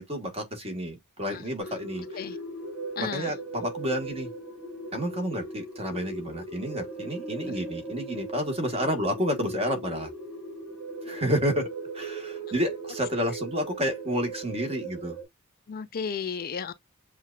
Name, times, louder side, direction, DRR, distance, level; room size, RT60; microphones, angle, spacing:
voice 1, 0.0-2.2 3.0-4.3 4.9-10.1 11.0-11.7 11.9-15.2, equal, 30° right, 1.4 m, -30 dB
sound 1, 1.6-15.2, right 2 dB, 5° right, 1.9 m, -38 dB
voice 2, 3.0-3.3 7.5-7.6 15.7-16.7, left 6 dB, 45° left, 0.4 m, -33 dB
7.4 x 2.5 x 2.3 m
head